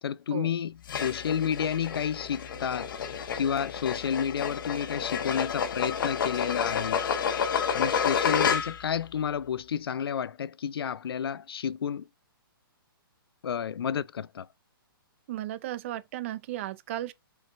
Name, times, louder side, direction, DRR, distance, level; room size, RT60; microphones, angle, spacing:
voice 1, 0.0-2.9 3.3-7.0 7.7-12.1 13.4-14.5, left 8 dB, 80° left, 0.5 m, -31 dB
sound 1, 0.8-8.9, left 7 dB, 60° left, 1.3 m, -30 dB
voice 2, 15.3-17.1, right 14 dB, 35° right, 0.6 m, -35 dB
7.9 x 4.7 x 2.6 m
hypercardioid pair, 160°, 12 cm